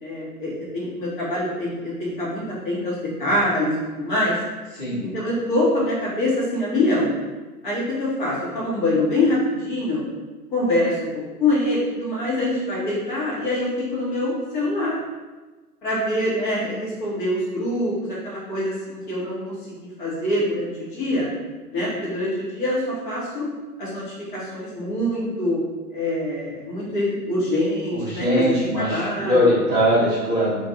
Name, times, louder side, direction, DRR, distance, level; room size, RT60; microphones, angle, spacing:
voice 1, 0.0-4.3 5.0-7.1 7.6-10.0 10.5-15.0 15.8-21.3 21.7-23.5 23.8-25.6 25.9-29.5, left 1 dB, 35° left, -7 dB, 1.2 m, -25 dB
voice 2, 27.9-30.6, equal, 10° right, -10 dB, 0.8 m, -21 dB
2.5 x 2.5 x 4.2 m, 1.3 s
figure-of-eight pair, 125°, 45 cm